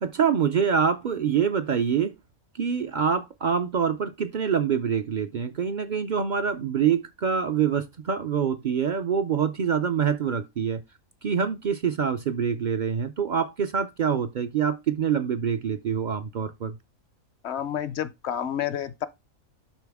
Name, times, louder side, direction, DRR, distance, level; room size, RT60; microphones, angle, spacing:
voice 1, 0.0-2.1 2.6-10.8 11.2-16.8, right 7 dB, 65° right, 0.4 m, -25 dB
voice 2, 17.4-19.1, left 10 dB, 65° left, 0.7 m, -29 dB
12.0 x 4.0 x 3.5 m
omnidirectional pair, 1.5 m